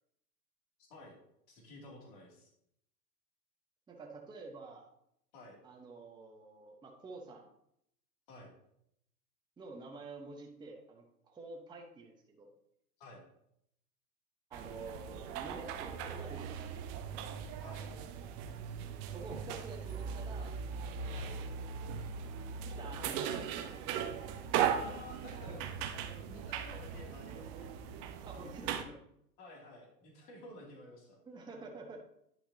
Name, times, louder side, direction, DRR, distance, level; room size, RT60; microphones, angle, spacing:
voice 1, 1.5-2.5 5.3-5.6 8.3-8.5 13.0-13.2 17.6-17.9 21.1-21.3 24.8-25.7 26.2-27.7 29.4-31.2, left 1 dB, 45° left, -1 dB, 2.6 m, -52 dB
voice 2, 3.9-4.8 5.6-7.5 9.6-12.5 14.5-17.1 19.1-20.5 20.8-21.4 22.8-24.2 25.4-25.6 28.3-29.0 31.3-32.0, right 3 dB, 10° right, 0 dB, 0.9 m, -49 dB
sound 1, 14.5-28.8, right 7 dB, 30° right, 0.6 m, -39 dB
10.5 x 5.7 x 2.7 m, 0.75 s
hypercardioid pair, 110°, 47 cm